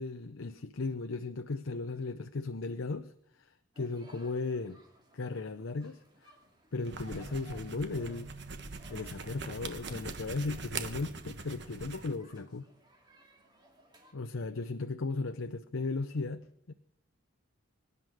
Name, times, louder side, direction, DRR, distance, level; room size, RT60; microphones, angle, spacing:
voice 1, 0.0-4.8 5.1-6.3 6.7-8.3 8.9-12.7 14.1-16.7, left 3 dB, 75° left, 9 dB, 0.7 m, -36 dB
sound 1, 3.7-14.1, left 1 dB, 20° right, 2.9 m, -61 dB
sound 2, 6.8-12.2, right 4 dB, 55° right, 1.3 m, -42 dB
25.0 x 11.0 x 4.9 m, 0.69 s
head